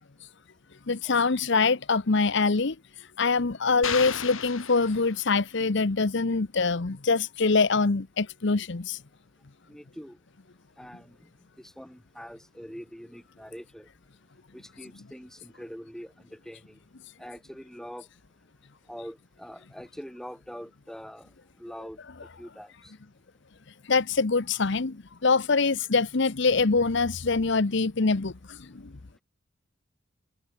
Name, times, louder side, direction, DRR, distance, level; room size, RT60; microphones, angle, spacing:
voice 1, 0.9-2.7 3.2-9.0 23.9-28.7, left 4 dB, 60° left, 0.9 m, -24 dB
sound 1, 3.8-5.6, left 7 dB, 75° left, 5.6 m, -34 dB
voice 2, 9.7-10.2 10.8-11.3 11.6-13.9 14.5-16.8 17.2-18.1 18.9-21.3 21.6-22.0 22.4-22.9, equal, ahead, 7.3 m, -44 dB
head